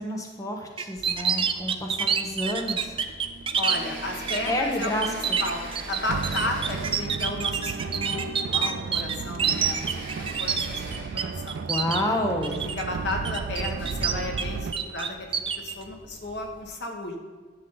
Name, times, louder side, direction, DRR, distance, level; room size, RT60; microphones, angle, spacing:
voice 1, 0.0-2.9 4.5-5.4 11.7-12.6, left 1 dB, 20° left, 2 dB, 0.9 m, -29 dB
sound 1, 0.8-3.8 4.3-4.5 4.8-11.2 11.5-12.0 12.4-12.8 13.2-14.4 14.7-15.7, right 7 dB, 30° right, 0.5 m, -27 dB
sound 2, 0.9-16.6, right 1 dB, 50° right, 3.1 m, -43 dB
sound 3, 1.4-14.7, right 5 dB, 85° right, 0.4 m, -35 dB
voice 2, 3.6-5.6 5.9-11.7 12.4-17.2, left 2 dB, 75° left, 2 dB, 1.6 m, -34 dB
12.0 x 7.3 x 3.9 m, 1.5 s
head